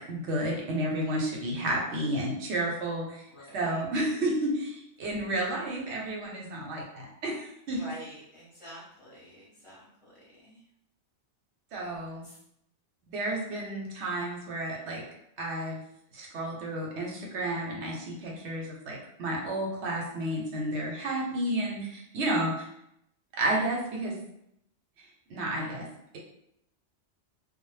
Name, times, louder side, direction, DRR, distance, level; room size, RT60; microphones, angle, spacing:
voice 1, 0.0-3.2 3.5-7.8 11.7-12.3 13.0-15.0 15.4-15.8 16.1-22.7 23.3-24.2 25.3-25.9, right 1 dB, 75° right, -2 dB, 0.9 m, -31 dB
voice 2, 3.3-3.8 7.7-10.6 12.2-12.4 21.2-21.5, equal, 30° left, -9 dB, 0.8 m, -48 dB
2.1 x 2.0 x 3.1 m, 0.79 s
omnidirectional pair, 1.2 m